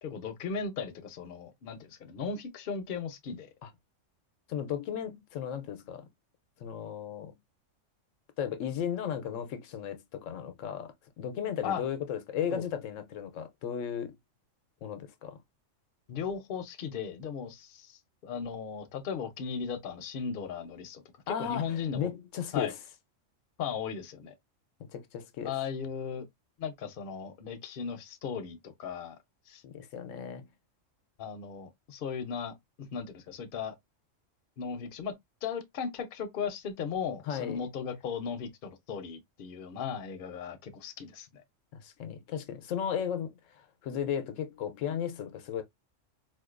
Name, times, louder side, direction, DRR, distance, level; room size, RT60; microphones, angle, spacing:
voice 1, 0.0-3.5 11.6-11.8 12.5-12.6 16.1-22.1 22.5-22.7 23.6-24.3 25.4-26.2 26.6-29.2 29.5-29.6 31.2-32.5 32.9-33.7 34.6-35.1 35.4-41.4, left 6 dB, 55° left, 0.7 m, -37 dB
voice 2, 4.5-6.1 6.6-7.4 8.4-14.1 14.8-15.4 21.3-22.8 24.9-25.5 29.6-30.5 37.3-37.6 41.7-45.6, left 8 dB, 80° left, 0.9 m, -35 dB
4.4 x 2.3 x 2.4 m
omnidirectional pair, 1.3 m